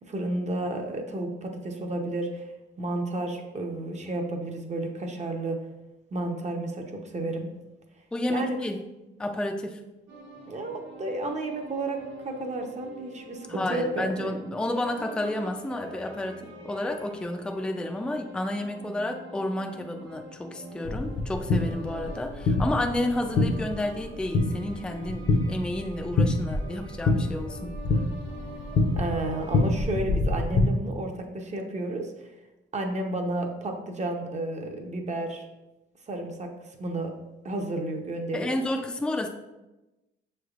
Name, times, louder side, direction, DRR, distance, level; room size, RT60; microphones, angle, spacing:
voice 1, 0.1-2.5 2.8-5.6 6.1-7.5 8.3-8.6 10.5-14.3 28.9-32.3 32.7-35.4 36.1-37.1 37.4-38.6, right 2 dB, 35° right, 2 dB, 0.7 m, -32 dB
voice 2, 8.1-8.8 9.2-9.8 13.5-27.7 38.3-39.3, left 1 dB, 5° left, 4 dB, 0.4 m, -31 dB
sound 1, 10.1-29.7, right 1 dB, 80° right, 1.2 m, -45 dB
sound 2, 20.8-30.6, left 2 dB, 50° left, 0.7 m, -27 dB
6.1 x 3.3 x 2.4 m, 1.0 s
cardioid pair, 90°, 20 cm